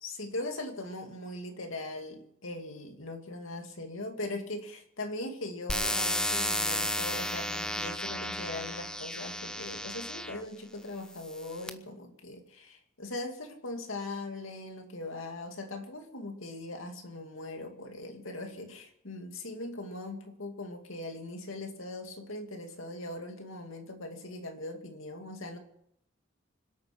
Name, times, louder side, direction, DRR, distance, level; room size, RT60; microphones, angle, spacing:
voice 1, 0.0-25.6, left 2 dB, 85° left, 4 dB, 2.4 m, -40 dB
sound 1, 5.7-10.4 11.1-11.7, left 1 dB, 5° left, 0.9 m, -33 dB
26.0 x 8.8 x 6.0 m, 0.72 s
head